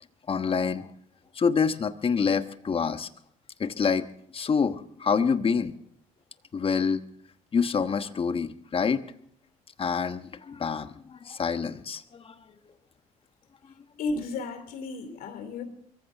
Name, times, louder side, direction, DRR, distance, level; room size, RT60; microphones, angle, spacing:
voice 1, 0.3-0.9 1.4-3.1 3.6-4.1 4.3-5.7 6.5-7.0 7.5-9.0 9.8-10.9 11.2-12.3, left 5 dB, 35° left, 10 dB, 1.2 m, -26 dB
voice 2, 14.0-15.6, left 3 dB, 70° left, 9 dB, 2.7 m, -34 dB
23.5 x 15.0 x 3.5 m, 0.69 s
supercardioid pair, 65°, 15 cm